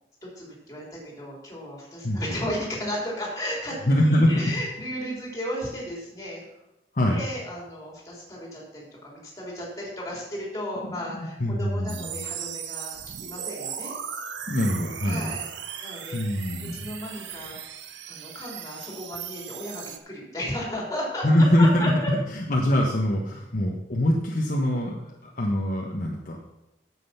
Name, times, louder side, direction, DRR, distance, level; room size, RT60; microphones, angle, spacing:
voice 1, 0.2-6.4 7.0-13.9 15.0-15.4 15.8-16.2 16.8-17.6 18.1-21.9, left 1 dB, 20° left, -3 dB, 3.5 m, -34 dB
voice 2, 3.9-4.3 6.9-7.2 11.2-12.2 14.5-15.3 16.1-16.9 21.2-26.4, left 1 dB, 45° left, -1 dB, 1.1 m, -23 dB
sound 1, 11.9-20.0, right 8 dB, 85° right, 0.8 m, -37 dB
9.1 x 7.7 x 5.7 m, 0.92 s
head